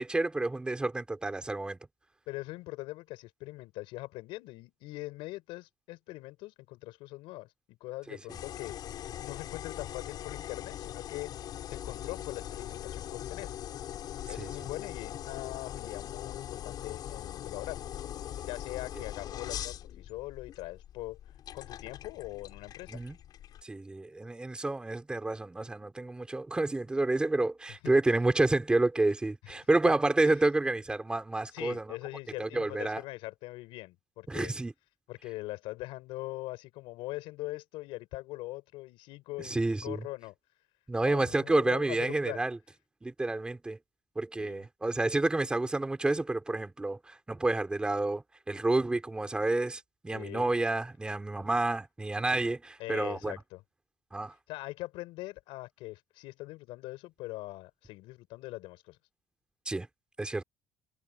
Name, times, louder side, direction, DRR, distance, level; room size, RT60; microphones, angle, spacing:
voice 1, 0.0-1.8 8.1-8.2 14.4-14.5 22.9-23.2 23.6-31.9 32.4-33.0 34.3-34.7 39.4-40.0 40.9-42.6 43.0-43.8 44.2-53.4 54.1-54.3 59.7-59.9 60.2-60.4, right 2 dB, 10° right, 4.1 m, -29 dB
voice 2, 2.3-8.8 9.2-11.3 11.7-13.5 14.3-17.8 18.4-21.2 21.5-23.0 27.8-27.9 30.2-30.3 31.5-34.5 35.1-40.3 41.0-42.4 44.4-44.6 50.1-50.5 52.8-53.6 54.5-59.0, left 19 dB, 90° left, 4.9 m, -42 dB
sound 1, 8.3-23.6, left 11 dB, 50° left, 4.8 m, -41 dB
cardioid pair, 155°, 9 cm